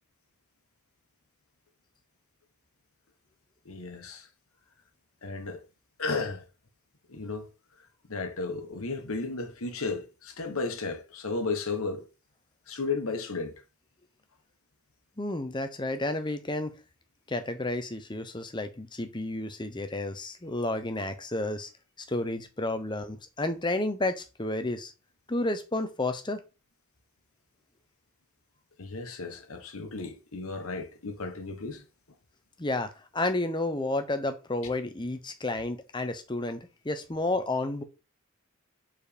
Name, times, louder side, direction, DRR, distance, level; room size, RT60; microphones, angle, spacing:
voice 1, 3.6-4.3 5.2-5.6 6.0-6.4 7.1-7.5 8.1-12.1 12.7-13.5 28.8-31.9, left 3 dB, 75° left, 1.2 m, -34 dB
voice 2, 15.2-16.8 17.3-21.7 22.1-24.9 25.3-26.4 32.6-37.8, left 2 dB, 20° left, 0.8 m, -31 dB
4.9 x 4.3 x 5.1 m
head